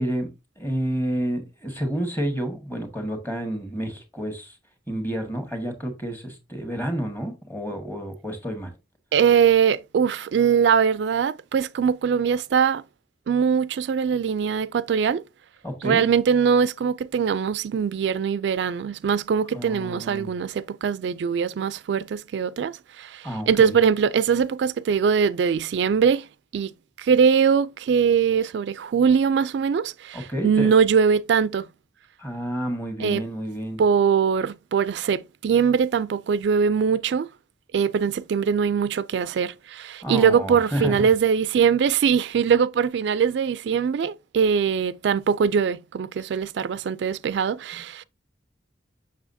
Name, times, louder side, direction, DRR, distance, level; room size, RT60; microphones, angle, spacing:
voice 1, 0.0-4.5 4.9-8.7 15.6-16.0 19.5-20.3 23.2-23.7 30.1-30.7 32.2-33.8 40.0-41.1, right 1 dB, 10° left, 1.5 m, -30 dB
voice 2, 9.1-12.8 13.3-15.2 15.8-26.3 26.5-26.7 27.0-31.7 33.0-33.2 33.8-37.3 37.7-48.0, right 6 dB, 70° right, 0.3 m, -22 dB
7.0 x 6.2 x 2.6 m
head